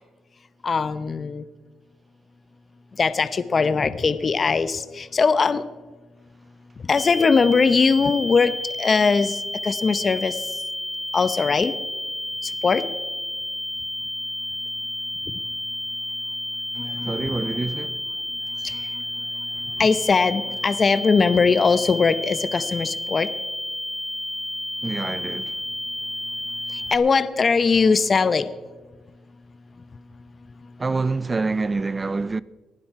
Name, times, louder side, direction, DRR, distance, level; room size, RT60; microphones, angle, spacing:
voice 1, 0.6-1.4 3.0-5.6 6.9-8.5 8.8-10.4 11.1-11.7 12.6-12.8 16.8-17.6 18.6-18.8 19.8-23.3 26.9-28.5, left 5 dB, 40° left, 0.8 m, -20 dB
sound 1, 7.0-27.0, left 1 dB, 20° left, 1.7 m, -31 dB
voice 2, 17.0-18.0 24.8-25.6 30.8-32.4, right 3 dB, 25° right, 0.5 m, -26 dB
19.0 x 11.5 x 4.8 m
cardioid pair, 90°, 0 cm